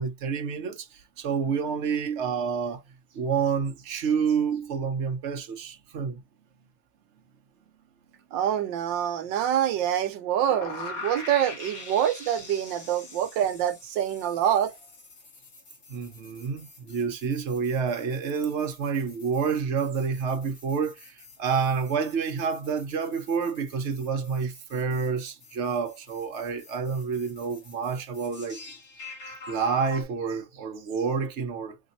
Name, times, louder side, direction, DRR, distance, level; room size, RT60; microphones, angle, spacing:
voice 1, 0.0-2.8 3.1-6.2 15.9-28.7 29.5-31.8, right 6 dB, 55° right, 0.8 m, -28 dB
voice 2, 8.3-14.7, right 10 dB, 75° right, 1.3 m, -26 dB
sound 1, 10.4-30.0, left 3 dB, 50° left, 2.1 m, -45 dB
3.9 x 3.4 x 2.5 m
omnidirectional pair, 2.1 m